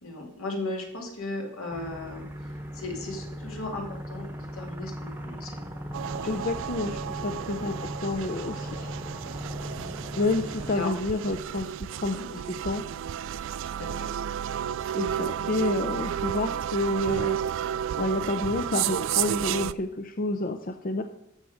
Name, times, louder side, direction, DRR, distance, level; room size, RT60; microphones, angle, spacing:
voice 1, 0.0-5.6 6.3-6.4 7.5-7.7 9.6-10.0 10.7-10.9 12.0-12.2 13.6-14.1, left 2 dB, 75° left, 1 dB, 2.5 m, -37 dB
sound 1, 1.7-10.8, equal, 10° right, 1.0 m, -38 dB
sound 2, 5.9-19.7, right 9 dB, 60° right, 0.3 m, -32 dB
voice 2, 6.3-8.9 10.2-12.8 14.9-17.4 18.0-21.0, left 2 dB, 40° left, 7 dB, 0.6 m, -29 dB
12.5 x 6.9 x 5.0 m, 0.86 s
head